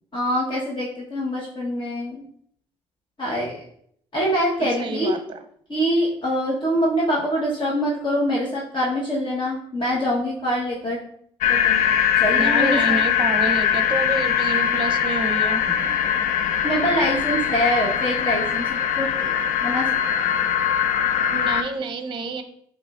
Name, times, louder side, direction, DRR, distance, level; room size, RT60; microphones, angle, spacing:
voice 1, 0.1-2.2 3.2-3.6 4.1-5.2 5.7-11.0 11.5-11.8 12.2-13.0 16.6-19.3 19.6-19.9, equal, 35° left, -4 dB, 1.2 m, -24 dB
voice 2, 4.8-5.4 12.3-15.9 21.3-22.4, right 3 dB, 35° right, 7 dB, 0.7 m, -28 dB
sound 1, 11.4-21.6, left 9 dB, 65° left, 0.5 m, -21 dB
5.0 x 3.2 x 2.5 m, 0.66 s
hypercardioid pair, 55°, 14 cm